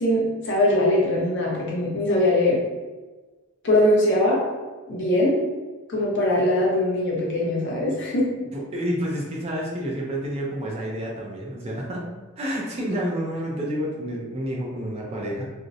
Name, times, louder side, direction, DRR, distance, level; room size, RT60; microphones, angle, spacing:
voice 1, 0.0-2.6 3.6-4.4 4.9-5.4 5.9-8.3, left 1 dB, 55° left, -3 dB, 0.6 m, -21 dB
voice 2, 8.5-12.0 12.4-15.5, equal, 30° right, -3 dB, 0.4 m, -29 dB
2.6 x 2.0 x 2.5 m, 1.3 s
head